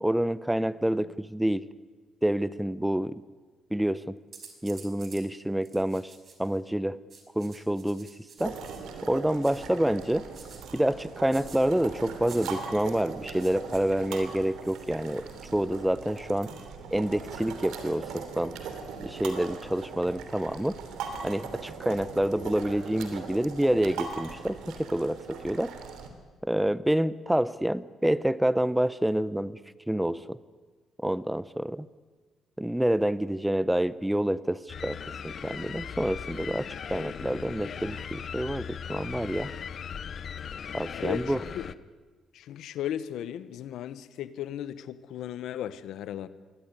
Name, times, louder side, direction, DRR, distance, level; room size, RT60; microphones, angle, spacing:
voice 1, 0.0-1.7 2.2-3.2 3.7-4.2 4.6-6.1 6.4-7.0 7.4-8.1 8.4-8.6 9.0-10.3 10.7-16.5 16.9-18.5 19.0-20.7 21.2-25.7 26.4-29.6 29.9-30.4 31.0-31.9 32.6-35.0 35.2-36.6 36.9-39.5 40.7-41.4, right 1 dB, 5° right, 17 dB, 0.8 m, -27 dB
sound 1, 4.3-5.2 5.6-6.6 7.1-8.8 9.4-9.7 10.3-10.6 11.3-11.6 12.3-12.5 13.4-13.8 14.6-15.5 16.1-16.7, right 5 dB, 50° right, 4.6 m, -50 dB
sound 2, 8.4-26.1, right 5 dB, 85° right, 3.1 m, -40 dB
sound 3, 34.7-41.7, left 7 dB, 55° left, 0.9 m, -38 dB
voice 2, 41.0-41.6 42.3-46.3, left 11 dB, 80° left, 15 dB, 1.1 m, -36 dB
22.5 x 17.0 x 9.8 m, 1.4 s
cardioid pair, 90°, 0 cm